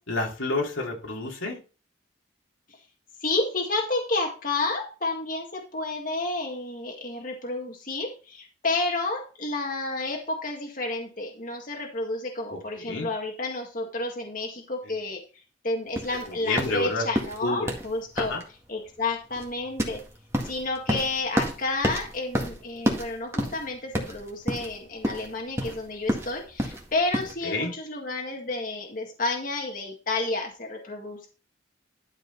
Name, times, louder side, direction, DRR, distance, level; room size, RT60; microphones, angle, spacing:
voice 1, 0.1-1.6 12.5-13.1 16.4-17.1 17.4-17.7 18.2-18.4 27.4-27.7, left 3 dB, 90° left, -1 dB, 2.8 m, -29 dB
voice 2, 3.2-15.2 15.6-18.3 18.7-20.0 20.4-31.3, left 2 dB, 45° left, 1 dB, 1.8 m, -30 dB
sound 1, 15.9-27.3, equal, 15° right, 1.9 m, -31 dB
12.0 x 5.3 x 4.0 m, 0.35 s
head